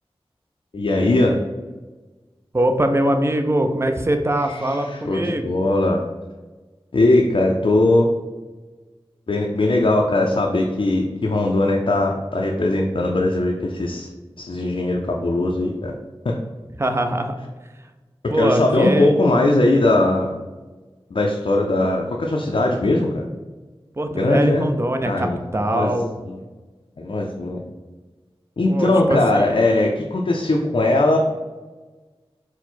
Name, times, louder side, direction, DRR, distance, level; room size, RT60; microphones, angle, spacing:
voice 1, 0.7-1.4 4.5-6.0 6.9-8.1 9.3-14.1 14.4-15.9 16.2-16.3 18.4-20.3 21.1-23.2 24.2-24.7 25.0-25.4 25.7-25.9 26.2-26.4 27.0-27.6 28.6-31.2, left 2 dB, 60° left, 0 dB, 0.4 m, -19 dB
voice 2, 2.5-5.5 16.8-17.4 18.3-19.1 24.0-25.3 25.5-26.1 28.7-29.6, right 1 dB, 25° right, 6 dB, 0.4 m, -22 dB
4.3 x 2.1 x 4.2 m, 1.3 s
wide cardioid pair, 55°, 10 cm